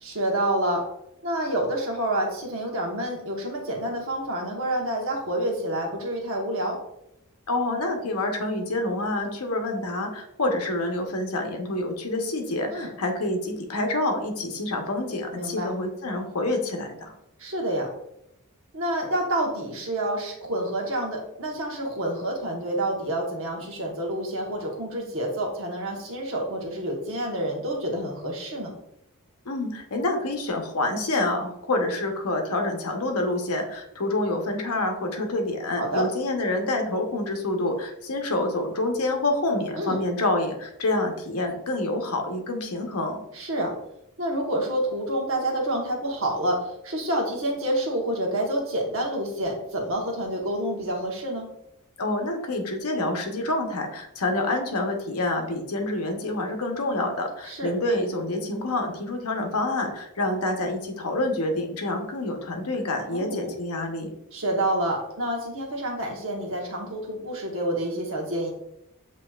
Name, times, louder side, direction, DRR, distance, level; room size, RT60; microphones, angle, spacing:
voice 1, 0.0-0.8 1.2-6.8 12.7-12.9 15.3-15.7 17.4-17.9 18.7-28.7 35.8-36.1 39.8-40.0 43.3-43.7 44.2-51.5 57.4-57.7 63.1-63.5 64.3-68.5, right 1 dB, 65° right, 0 dB, 1.2 m, -28 dB
voice 2, 7.5-17.1 29.4-43.3 52.0-64.1, left 2 dB, 90° left, 3 dB, 0.9 m, -27 dB
7.4 x 3.0 x 2.3 m, 0.79 s
head